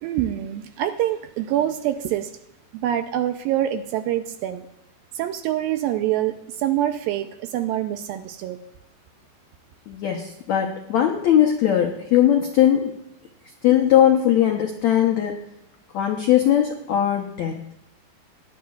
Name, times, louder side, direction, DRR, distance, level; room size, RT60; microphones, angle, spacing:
voice 1, 0.0-2.3 2.7-4.6 5.2-8.6, right 12 dB, 80° right, 8 dB, 2.2 m, -25 dB
voice 2, 9.9-12.9 13.6-15.4 15.9-17.6, left 11 dB, 85° left, 3 dB, 1.6 m, -19 dB
18.5 x 11.5 x 2.4 m, 0.84 s
omnidirectional pair, 4.5 m